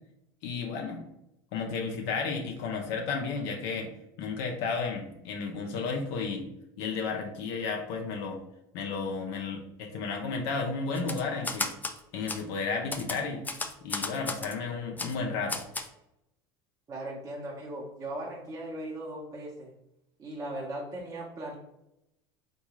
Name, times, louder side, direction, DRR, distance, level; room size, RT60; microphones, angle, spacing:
voice 1, 0.4-1.0 1.5-3.9 4.2-6.5 6.8-8.4 8.7-11.7 12.1-13.4 13.8-15.6, left 4 dB, 70° left, 2 dB, 0.5 m, -33 dB
Typewriter, 10.9-12.0 12.3-12.4 12.9-14.5 15.0-15.1 15.5-15.9, left 3 dB, 15° left, 0.4 m, -33 dB
voice 2, 16.9-19.7 20.2-21.6, right 1 dB, 30° right, -5 dB, 0.8 m, -38 dB
3.5 x 2.3 x 2.9 m, 0.85 s
hypercardioid pair, 90°, 12 cm